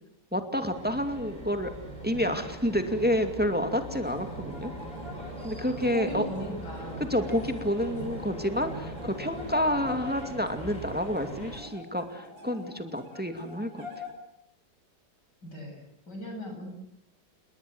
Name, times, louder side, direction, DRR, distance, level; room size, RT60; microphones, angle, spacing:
voice 1, 0.3-1.7 2.0-4.7 5.4-6.3 7.1-13.9, equal, 5° right, 7 dB, 2.2 m, -29 dB
sound 1, 0.7-11.6, right 1 dB, 20° left, 6.7 m, -40 dB
sound 2, 2.6-14.1, left 3 dB, 60° right, 5.8 m, -46 dB
voice 2, 5.9-7.1 15.4-16.7, equal, 55° left, 3 dB, 8.7 m, -38 dB
29.0 x 21.0 x 7.9 m, 0.75 s
omnidirectional pair, 2.2 m